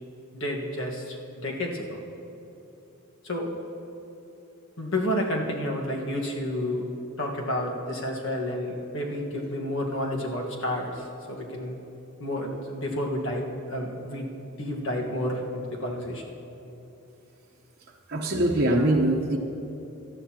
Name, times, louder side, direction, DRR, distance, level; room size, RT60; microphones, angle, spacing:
voice 1, 0.3-2.0 3.2-3.5 4.8-6.9 7.2-11.8 12.2-14.3 14.6-16.3 18.3-18.4, left 1 dB, 65° left, 0 dB, 1.6 m, -30 dB
voice 2, 18.1-19.4, right 1 dB, 50° right, -2 dB, 1.0 m, -22 dB
18.0 x 12.5 x 2.9 m, 2.9 s
head